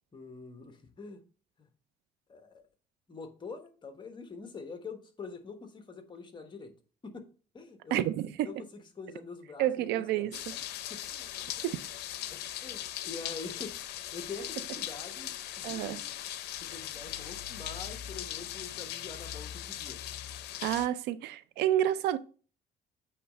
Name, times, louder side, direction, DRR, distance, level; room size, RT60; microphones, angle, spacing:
voice 1, 0.1-1.2 1.6-1.7 2.3-2.6 3.1-6.7 7.0-7.3 7.5-8.0 8.4-10.6 10.9-11.3 11.6-11.7 12.3-16.2 16.6-20.0, left 4 dB, 25° left, 1.2 m, -45 dB
voice 2, 7.9-8.5 9.6-10.3 11.6-11.8 15.6-16.0 20.6-22.2, right 12 dB, 85° right, 0.5 m, -29 dB
sound 1, 10.3-20.9, left 12 dB, 75° left, 0.6 m, -39 dB
8.0 x 3.2 x 5.1 m
cardioid pair, 110°, 17 cm